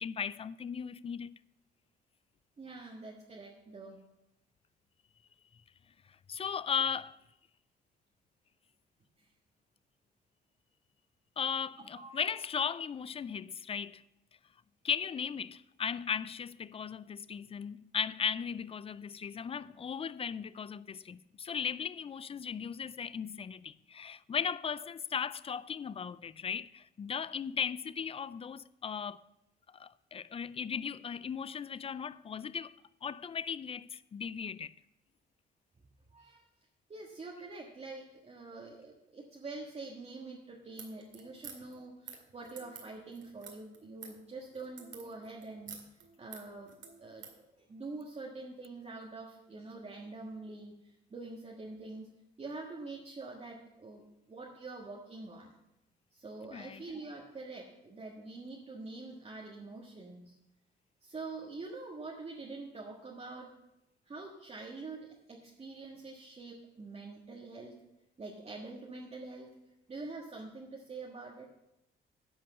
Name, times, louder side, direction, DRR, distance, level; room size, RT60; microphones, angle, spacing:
voice 1, 0.0-1.4 6.3-7.2 11.4-14.0 14.8-29.2 29.7-32.8 33.0-34.7 56.5-56.9, left 7 dB, 30° left, 0.4 m, -37 dB
voice 2, 2.6-4.0 9.2-9.3 11.9-12.1 36.1-36.4 36.9-45.8 46.2-46.7 47.0-47.2 47.7-52.1 52.4-55.6 56.1-60.4 61.0-63.5 64.0-67.8 68.2-69.5 69.9-71.5, right 3 dB, 30° right, 1.5 m, -45 dB
sound 1, 40.7-47.4, right 6 dB, 70° right, 2.2 m, -50 dB
10.5 x 5.5 x 7.1 m
cardioid pair, 90°, 20 cm